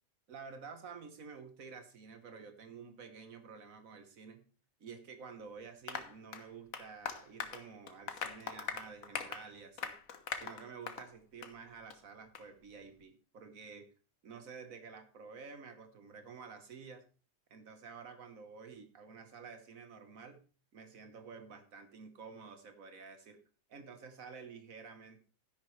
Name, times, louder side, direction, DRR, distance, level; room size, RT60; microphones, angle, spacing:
voice 1, 0.3-4.4 4.8-9.9 10.3-13.9 14.2-17.0 17.5-20.4 20.7-23.4 23.7-25.2, right 5 dB, 80° right, 7 dB, 1.6 m, -50 dB
Applause, 5.9-11.1 11.4-11.6 11.9-12.0 12.3-12.4, left 6 dB, 80° left, 1.5 m, -42 dB
12.5 x 10.5 x 3.2 m, 0.35 s
omnidirectional pair, 1.4 m